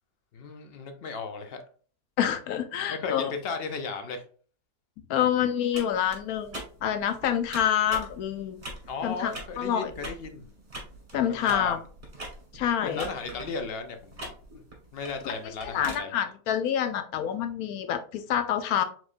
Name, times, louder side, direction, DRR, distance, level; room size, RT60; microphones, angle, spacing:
voice 1, 0.3-1.6 2.9-4.2 8.9-10.5 11.3-11.8 12.8-14.3 14.9-16.1, left 4 dB, 55° left, 6 dB, 0.7 m, -35 dB
voice 2, 2.2-3.3 5.1-8.6 9.0-9.9 11.1-11.8 12.5-13.1 15.2-15.3 15.7-18.8, left 9 dB, 80° left, 9 dB, 1.1 m, -27 dB
sound 1, 5.7-16.0, right 1 dB, 35° right, 1.5 m, -43 dB
5.0 x 3.7 x 2.5 m, 0.43 s
omnidirectional pair, 1.5 m